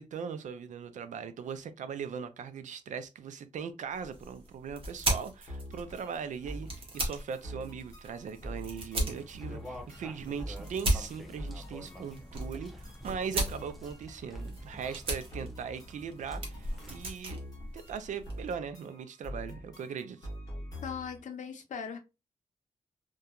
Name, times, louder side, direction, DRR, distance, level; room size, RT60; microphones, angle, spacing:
voice 1, 0.0-17.4 17.7-20.2, right 6 dB, 80° right, 0.4 m, -39 dB
sound 1, 3.9-18.5, right 1 dB, 45° right, 0.9 m, -37 dB
sound 2, 5.5-21.2, equal, 30° left, 0.9 m, -45 dB
sound 3, 9.0-17.2, left 1 dB, ahead, 0.5 m, -50 dB
voice 2, 20.8-22.0, left 6 dB, 90° left, 0.6 m, -39 dB
2.8 x 2.2 x 2.3 m
wide cardioid pair, 180°, 12 cm